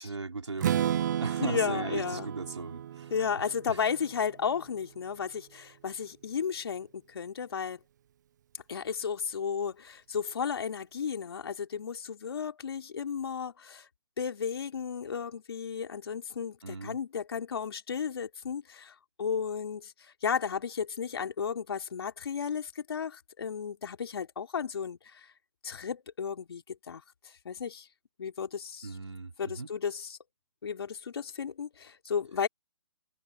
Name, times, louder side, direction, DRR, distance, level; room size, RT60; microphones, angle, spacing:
voice 1, 0.0-3.8 16.6-17.0 28.8-29.7, right 3 dB, 85° right, 3.9 m, -38 dB
Strum, 0.6-4.5, right 10 dB, 40° right, 0.5 m, -33 dB
voice 2, 1.4-2.3 3.1-7.8 8.7-13.9 14.2-25.3 25.6-27.0 27.5-27.9 28.2-28.9 29.4-30.2 30.6-32.5, left 6 dB, 60° left, 3.8 m, -34 dB
figure-of-eight pair, 145°, 15 cm